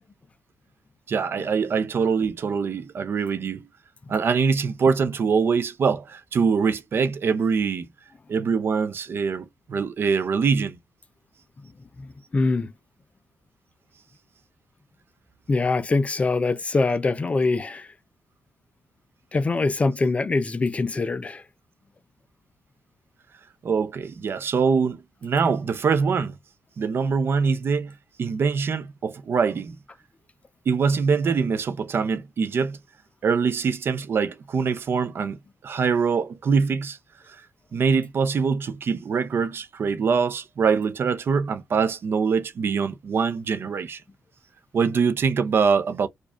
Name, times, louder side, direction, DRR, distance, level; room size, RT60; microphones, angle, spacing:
voice 1, 1.1-3.7 4.1-7.9 8.3-10.8 23.6-26.3 26.8-27.9 28.2-29.8 30.7-32.8 33.2-35.4 35.6-37.0 37.3-37.4 37.7-44.0 44.7-46.1, right 5 dB, 50° right, 0.6 m, -23 dB
voice 2, 12.0-12.7 15.5-17.9 19.3-21.4, left 3 dB, 25° left, 0.4 m, -23 dB
4.9 x 2.3 x 2.3 m
cardioid pair, 120°, 5 cm